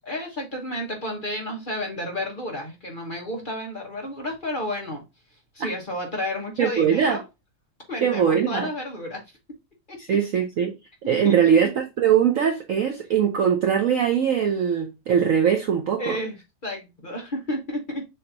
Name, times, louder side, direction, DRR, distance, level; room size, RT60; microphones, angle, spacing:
voice 1, 0.0-5.0 5.5-7.2 7.9-9.2 9.9-10.2 11.2-11.3 16.0-16.4 16.6-18.0, left 1 dB, 30° left, 1.1 m, -31 dB
voice 2, 6.6-7.2 8.0-8.7 10.0-10.8 11.1-16.2, right 8 dB, 65° right, 0.8 m, -21 dB
6.9 x 2.8 x 2.8 m
omnidirectional pair, 2.0 m